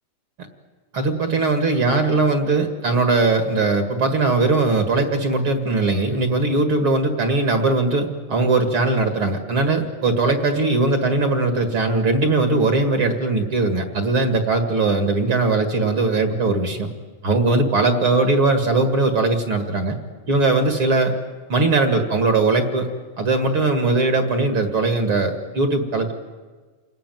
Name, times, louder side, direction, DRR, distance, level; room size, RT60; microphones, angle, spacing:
voice 1, 0.9-16.9 17.2-20.0 20.3-21.1 21.5-22.9 23.2-26.1, right 3 dB, 45° right, 6 dB, 2.6 m, -20 dB
29.0 x 19.5 x 9.4 m, 1.4 s
omnidirectional pair, 3.5 m